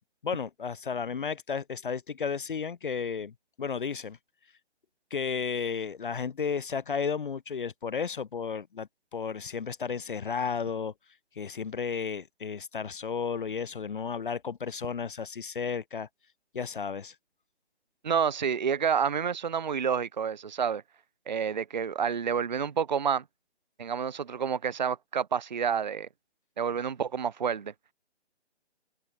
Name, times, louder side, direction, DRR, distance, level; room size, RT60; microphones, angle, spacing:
voice 1, 0.2-4.2 5.1-10.9 11.4-16.1 16.5-17.1, left 6 dB, 45° left, 0.9 m, -33 dB
voice 2, 18.0-20.8 21.3-23.2 23.8-26.1 26.6-27.7, right 7 dB, 40° right, 0.6 m, -29 dB
figure-of-eight pair, 160°, 35 cm